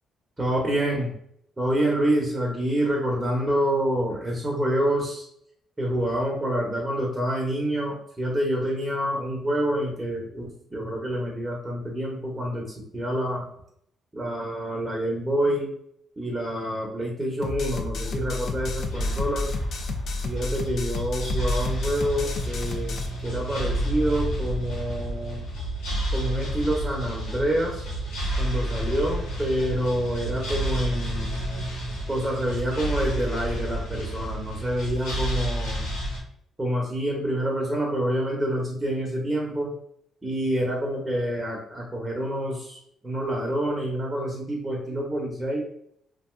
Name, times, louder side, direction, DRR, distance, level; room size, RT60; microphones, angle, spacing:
voice 1, 0.4-1.1 1.6-5.3 5.8-12.7 12.9-13.4 14.1-15.7 16.2-19.5 20.2-25.5 26.1-27.8 28.4-31.4 32.1-35.9 36.6-39.7 40.2-42.8 43.0-45.6, right 1 dB, 15° right, -2 dB, 0.8 m, -27 dB
sound 1, 17.4-23.1, left 3 dB, 60° left, 0.4 m, -31 dB
sound 2, 18.0-36.2, right 1 dB, 90° left, 1.2 m, -30 dB
2.6 x 2.3 x 3.1 m, 0.69 s
cardioid pair, 90°, 0 cm